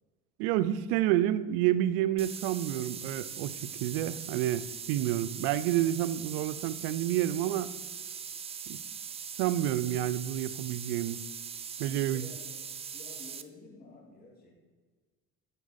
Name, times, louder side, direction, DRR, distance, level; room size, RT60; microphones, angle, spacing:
voice 1, 0.4-7.8 8.7-8.8 9.4-11.2 11.8-12.2, right 13 dB, 85° right, 14 dB, 0.5 m, -29 dB
sound 1, 2.2-13.4, right 7 dB, 20° right, 0.4 m, -41 dB
voice 2, 11.8-12.6 12.9-14.5, left 3 dB, 30° left, -2 dB, 2.1 m, -50 dB
8.2 x 4.3 x 5.6 m, 1.4 s
supercardioid pair, 100°, 31 cm